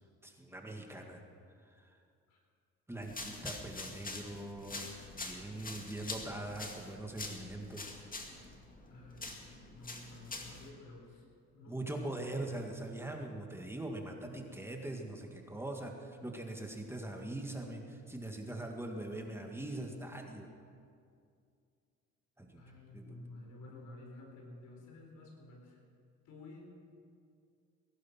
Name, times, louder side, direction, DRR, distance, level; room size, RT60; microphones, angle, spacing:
voice 1, 0.2-1.2 1.7-2.0 2.9-7.9 11.7-20.5 22.4-22.6 22.9-23.2, right 1 dB, 10° right, 2 dB, 1.9 m, -42 dB
sound 1, 3.0-10.7, left 3 dB, 30° left, 2.2 m, -45 dB
voice 2, 8.9-11.3 11.5-12.4 22.5-25.8 26.2-26.6, left 2 dB, 80° left, 1 dB, 4.3 m, -52 dB
20.0 x 11.5 x 6.0 m, 2.3 s
cardioid pair, 90°, 30 cm